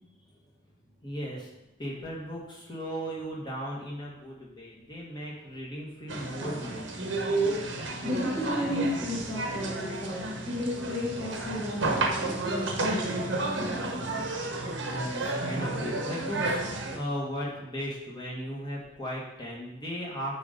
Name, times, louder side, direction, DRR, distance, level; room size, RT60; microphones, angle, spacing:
voice 1, 1.0-1.5 1.8-7.2 14.8-20.4, equal, 20° left, -4 dB, 1.7 m, -37 dB
bray arts break time, 6.1-17.0, right 2 dB, 65° right, 1.0 m, -31 dB
voice 2, 8.0-14.0, left 1 dB, ahead, -8 dB, 1.2 m, -33 dB
8.5 x 3.9 x 5.2 m, 0.95 s
head